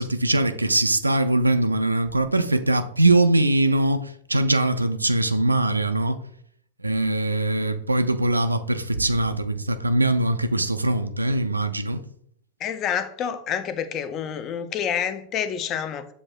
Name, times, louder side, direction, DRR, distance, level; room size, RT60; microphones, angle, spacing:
voice 1, 0.0-6.2 6.8-12.0, right 2 dB, 80° right, 0.3 m, -22 dB
voice 2, 12.6-16.1, left 8 dB, 35° left, 0.4 m, -28 dB
7.3 x 2.6 x 2.3 m
figure-of-eight pair, 90°, 0 cm